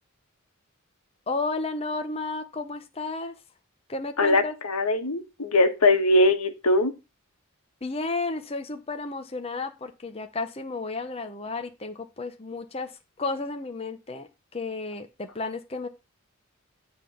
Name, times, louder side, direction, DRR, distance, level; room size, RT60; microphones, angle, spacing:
voice 1, 1.3-3.4 3.9-4.5 7.8-12.9 13.2-15.9, left 3 dB, 25° left, 0.7 m, -32 dB
voice 2, 4.2-6.9, left 2 dB, 90° left, 1.4 m, -21 dB
9.8 x 3.6 x 7.1 m
head